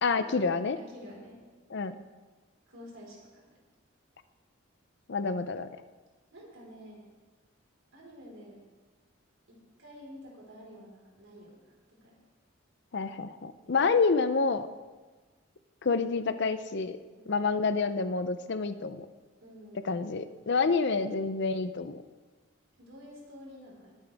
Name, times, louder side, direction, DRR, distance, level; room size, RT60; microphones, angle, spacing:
voice 1, 0.0-0.8 1.7-2.0 5.1-5.7 12.9-14.7 15.8-17.0 17.3-19.1 19.8-22.0, left 4 dB, 55° left, 11 dB, 0.6 m, -28 dB
voice 2, 0.8-1.4 2.7-3.5 6.3-7.1 7.9-8.6 9.5-11.6 12.0-12.2 13.6-13.9 17.2-17.4 19.4-20.0 22.8-24.0, equal, 75° right, -3 dB, 4.5 m, -49 dB
20.5 x 8.9 x 3.5 m, 1.3 s
head